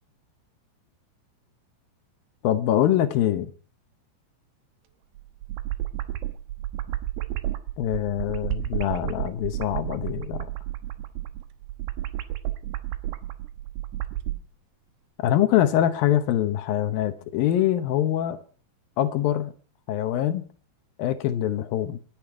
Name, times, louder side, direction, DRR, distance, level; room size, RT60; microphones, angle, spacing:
voice 1, 2.4-3.5 7.8-10.5 15.2-18.4 19.0-19.5 19.9-20.4 21.0-22.0, left 11 dB, 75° left, 2.2 m, -24 dB
sound 1, 5.1-14.4, right 14 dB, 70° right, 2.8 m, -32 dB
28.0 x 10.5 x 4.7 m
omnidirectional pair, 5.3 m